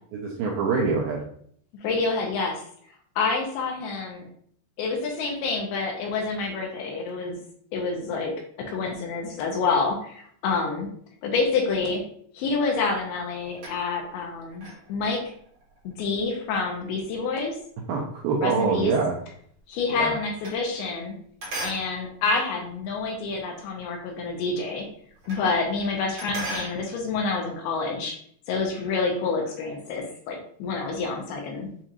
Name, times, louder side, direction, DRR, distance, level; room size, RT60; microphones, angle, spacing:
voice 1, 0.1-1.2 17.9-19.1 19.9-20.1, right 5 dB, 85° right, -1 dB, 2.1 m, -25 dB
voice 2, 1.8-2.6 3.2-4.3 4.8-7.4 7.7-8.3 8.7-10.9 11.2-12.0 12.3-15.2 15.8-17.6 18.4-18.9 19.7-21.1 21.6-24.9 25.3-28.2 28.5-31.7, left 4 dB, 80° left, 1 dB, 2.4 m, -28 dB
sound 1, 12.9-14.1 14.5-19.0 19.3-21.1 21.4-23.5 23.9-24.0 24.3-24.4 24.6-25.6 25.8-26.8, right 1 dB, 55° right, 1.5 m, -39 dB
7.1 x 2.8 x 2.4 m, 0.62 s
omnidirectional pair, 4.8 m